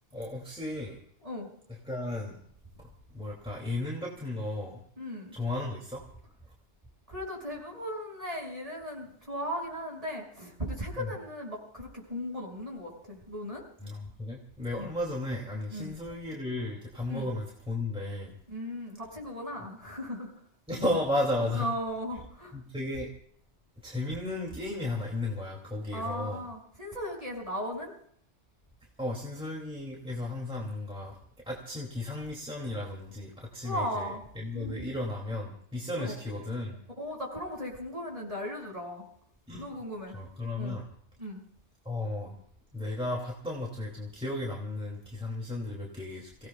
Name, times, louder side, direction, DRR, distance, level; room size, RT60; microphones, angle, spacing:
voice 1, 0.1-1.0 1.8-2.4 2.8-4.8 5.3-6.0 11.0-11.1 13.8-18.3 20.7-21.7 22.5-23.1 23.8-26.4 29.0-31.2 31.5-36.8 39.5-39.8 40.1-40.8 41.8-42.4 42.7-46.5, left 1 dB, 5° right, -2 dB, 2.3 m, -34 dB
voice 2, 5.0-5.4 7.1-13.6 14.8-14.9 15.7-15.9 17.1-17.3 18.5-20.3 21.4-22.5 25.9-27.9 33.4-34.2 34.5-34.9 36.0-36.1 37.0-39.0 39.6-40.1 40.6-40.8 41.2-41.4, equal, 30° right, -2 dB, 5.7 m, -37 dB
29.0 x 17.0 x 2.3 m, 0.64 s
omnidirectional pair, 1.2 m